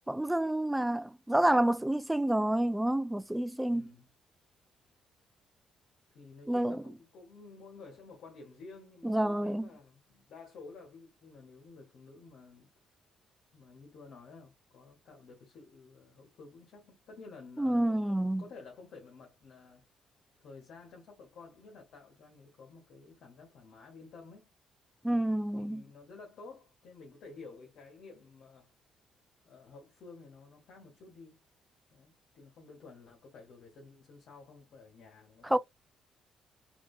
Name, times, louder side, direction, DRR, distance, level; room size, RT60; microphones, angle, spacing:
voice 1, 0.1-3.9 6.5-6.8 9.0-9.7 17.6-18.4 25.0-25.8 35.5-35.6, right 1 dB, 10° right, 0.4 m, -28 dB
voice 2, 3.6-4.1 6.1-12.7 13.5-19.8 20.4-24.5 25.1-28.7 29.4-31.4 31.9-35.6, left 4 dB, 70° left, 1.6 m, -52 dB
3.7 x 2.9 x 3.3 m
cardioid pair, 90°, 0 cm